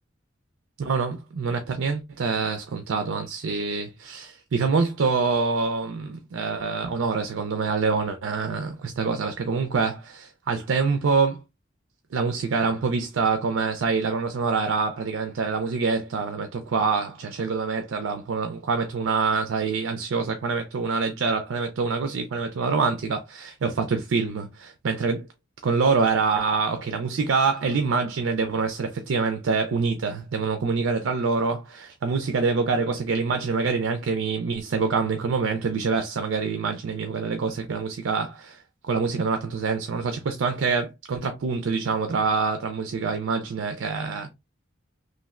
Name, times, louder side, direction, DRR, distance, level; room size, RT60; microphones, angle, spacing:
voice 1, 0.8-11.4 12.1-25.3 25.6-44.3, right 4 dB, 90° right, 0.4 m, -26 dB
3.1 x 2.4 x 2.4 m
head